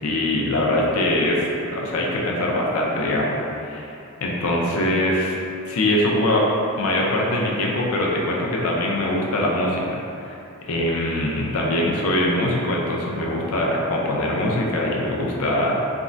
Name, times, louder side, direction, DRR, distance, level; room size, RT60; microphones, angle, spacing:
voice 1, 0.0-3.9 4.2-5.4 5.7-6.4 6.7-10.4 10.7-15.8, left 1 dB, 85° left, -2 dB, 0.5 m, -22 dB
3.5 x 2.1 x 2.5 m, 2.6 s
head